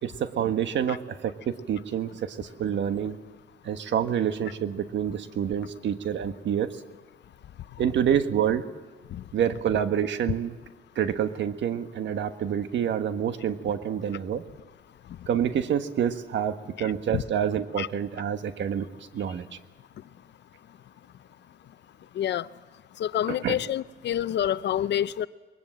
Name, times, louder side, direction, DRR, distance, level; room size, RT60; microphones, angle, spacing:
voice 1, 0.0-3.2 3.6-6.8 7.8-8.6 9.3-10.5 10.9-14.4 15.3-18.9 19.1-19.5 23.3-23.6, right 9 dB, 65° right, 1.4 m, -27 dB
voice 2, 23.0-25.3, left 11 dB, 60° left, 0.6 m, -27 dB
22.0 x 20.5 x 7.8 m
cardioid pair, 90°, 20 cm